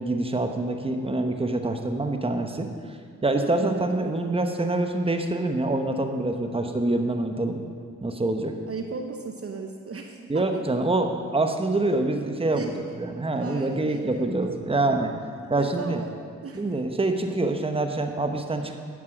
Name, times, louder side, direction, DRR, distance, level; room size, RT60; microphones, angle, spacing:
voice 1, 0.0-3.0 3.2-7.6 8.0-8.5 10.3-12.7 13.0-15.1 15.5-16.0 16.5-18.8, right 2 dB, 15° right, 5 dB, 1.1 m, -26 dB
voice 2, 3.5-4.4 8.7-10.7 12.1-12.8 13.3-14.5 15.5-16.9, right 4 dB, 45° right, 4 dB, 0.8 m, -37 dB
10.0 x 7.3 x 6.0 m, 2.1 s
supercardioid pair, 55°, 33 cm